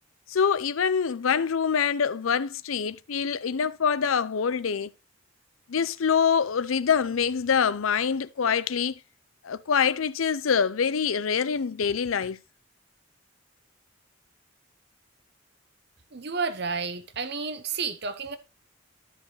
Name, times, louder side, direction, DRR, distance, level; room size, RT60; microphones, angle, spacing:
voice 1, 0.3-4.9 5.7-9.0 9.4-12.4, left 6 dB, 90° left, 0.6 m, -25 dB
voice 2, 16.1-18.4, right 5 dB, 55° right, 0.9 m, -31 dB
13.5 x 4.8 x 3.2 m
head